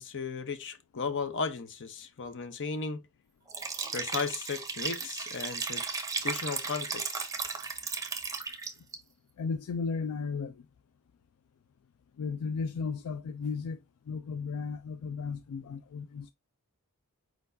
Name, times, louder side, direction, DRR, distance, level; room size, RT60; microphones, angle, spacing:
voice 1, 0.0-3.0 3.9-5.8 6.2-7.3, left 4 dB, 55° left, 0.8 m, -35 dB
Liquid, 3.5-9.0, right 4 dB, 15° right, 0.7 m, -35 dB
voice 2, 9.4-10.6 12.2-13.8 14.1-16.3, left 5 dB, 75° left, 0.4 m, -34 dB
4.7 x 4.3 x 2.6 m
head